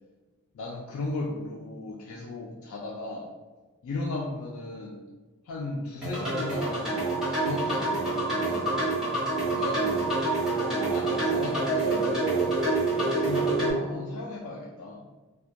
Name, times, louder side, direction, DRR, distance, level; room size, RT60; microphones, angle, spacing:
voice 1, 0.5-3.3 3.8-5.0 5.4-9.0 9.4-10.2 10.6-12.6 13.0-15.1, left 2 dB, 75° left, -3 dB, 0.3 m, -36 dB
sound 1, 6.0-13.7, right 2 dB, ahead, 0.7 m, -27 dB
2.1 x 2.1 x 2.7 m, 1.3 s
head